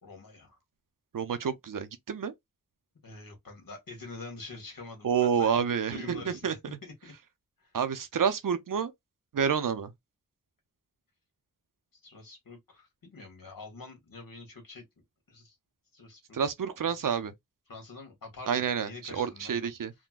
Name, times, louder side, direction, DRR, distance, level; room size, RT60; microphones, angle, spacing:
voice 1, 0.0-0.6 3.0-7.1 7.6-7.7 11.9-15.5 15.9-16.4 16.8-17.0 17.7-19.7, left 3 dB, 80° left, 1.5 m, -46 dB
voice 2, 1.1-2.3 5.0-6.6 7.7-8.9 9.3-9.9 16.3-17.3 18.5-19.9, right 7 dB, 70° right, 0.6 m, -29 dB
3.7 x 2.2 x 2.3 m
wide cardioid pair, 50°, 33 cm